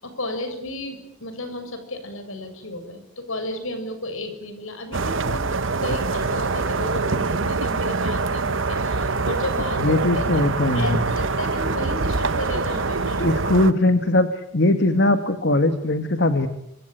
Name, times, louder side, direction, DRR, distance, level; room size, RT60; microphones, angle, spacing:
voice 1, 0.0-5.4 5.8-10.2 10.7-13.4, left 1 dB, 70° left, 8 dB, 6.8 m, -33 dB
sound 1, 4.9-13.7, right 3 dB, 60° right, 1.0 m, -24 dB
voice 2, 9.8-11.0 13.2-16.5, left 2 dB, 50° left, 9 dB, 1.7 m, -20 dB
26.0 x 24.5 x 9.2 m, 0.77 s
head